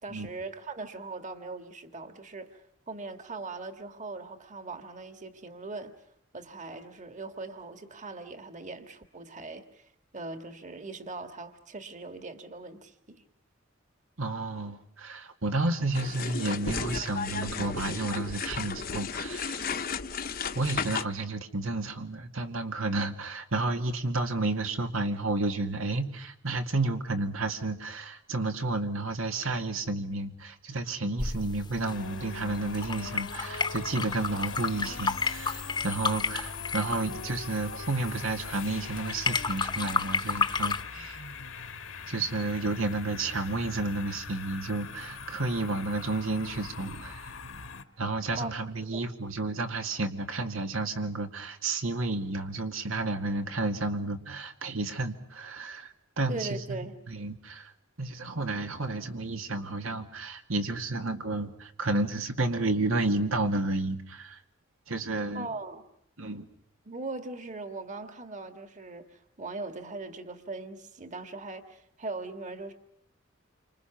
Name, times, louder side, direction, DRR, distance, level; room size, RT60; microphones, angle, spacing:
voice 1, 0.0-5.9 6.3-13.2 48.3-48.5 48.9-49.1 56.3-57.0 65.3-65.8 66.9-72.7, right 3 dB, 40° right, 8 dB, 1.8 m, -40 dB
voice 2, 14.2-19.7 20.5-41.2 42.1-47.3 48.0-56.8 57.1-57.7 58.0-64.4 64.9-65.5 66.2-66.4, right 2 dB, 90° right, 5 dB, 2.2 m, -31 dB
sound 1, 15.9-21.0, left 5 dB, 45° left, 0.9 m, -34 dB
sound 2, 31.2-40.8, left 4 dB, 20° left, 1.0 m, -33 dB
sound 3, 31.8-47.8, left 5 dB, 85° left, 1.8 m, -42 dB
29.0 x 26.0 x 6.0 m, 0.68 s
head